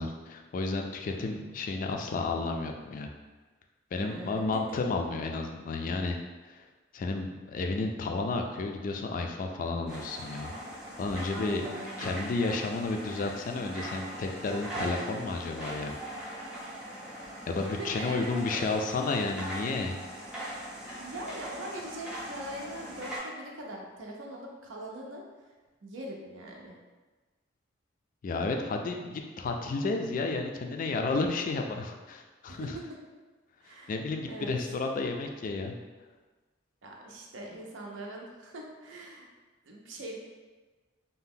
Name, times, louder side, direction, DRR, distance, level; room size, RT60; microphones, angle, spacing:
voice 1, 0.0-3.1 3.9-6.2 6.5-6.6 6.9-10.5 11.0-11.6 12.0-15.9 16.2-16.4 17.5-20.0 28.2-32.8 33.9-35.7, left 3 dB, 45° left, 3 dB, 0.3 m, -32 dB
voice 2, 4.0-4.8 11.3-12.2 17.6-18.7 21.0-25.2 25.8-26.8 32.5-32.7 33.6-33.9 34.3-34.5 36.8-39.3 39.6-40.2, right 1 dB, 90° right, -1 dB, 0.5 m, -42 dB
sound 1, 9.9-23.2, right 1 dB, 5° right, 0.6 m, -41 dB
2.7 x 2.1 x 3.6 m, 1.3 s
head